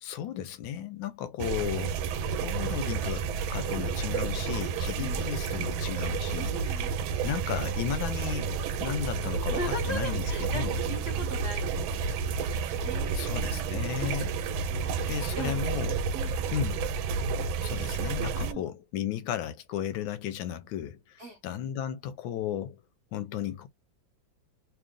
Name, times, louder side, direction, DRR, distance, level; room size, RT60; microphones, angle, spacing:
voice 1, 0.0-2.0 2.3-6.9 7.2-8.5 8.8-10.2 10.5-10.8 13.1-14.4 15.1-16.0 16.5-16.8 17.6-22.8 23.1-23.7, left 10 dB, 85° left, 1.3 m, -34 dB
sound 1, 1.4-18.5, right 5 dB, 90° right, 1.4 m, -30 dB
voice 2, 6.2-7.2 9.5-15.6 16.1-16.3 18.3-18.7 21.2-21.4, right 1 dB, 45° right, 0.9 m, -40 dB
3.3 x 2.5 x 3.5 m
omnidirectional pair, 2.1 m